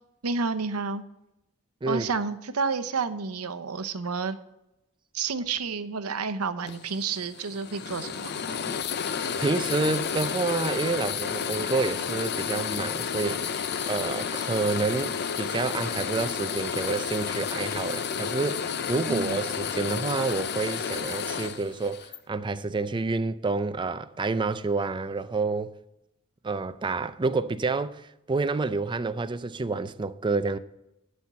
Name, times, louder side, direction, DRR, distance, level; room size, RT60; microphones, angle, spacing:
voice 1, 0.2-1.0 1.9-4.4 5.1-8.4 19.1-19.4, right 4 dB, 80° right, 0.8 m, -30 dB
sound 1, 6.7-22.2, left 7 dB, 50° left, 0.5 m, -31 dB
voice 2, 9.4-13.5 13.9-25.7 26.4-30.6, right 3 dB, 20° right, 0.4 m, -29 dB
11.5 x 4.4 x 7.4 m
head